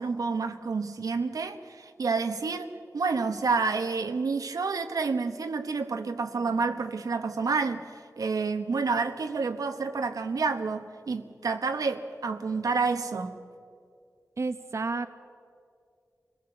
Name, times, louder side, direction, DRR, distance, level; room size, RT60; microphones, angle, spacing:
voice 1, 0.0-13.3, right 4 dB, 90° right, 7 dB, 1.1 m, -29 dB
voice 2, 14.4-15.1, right 3 dB, 55° right, 8 dB, 0.8 m, -30 dB
25.0 x 17.5 x 7.9 m, 2.3 s
wide cardioid pair, 100°, 6 cm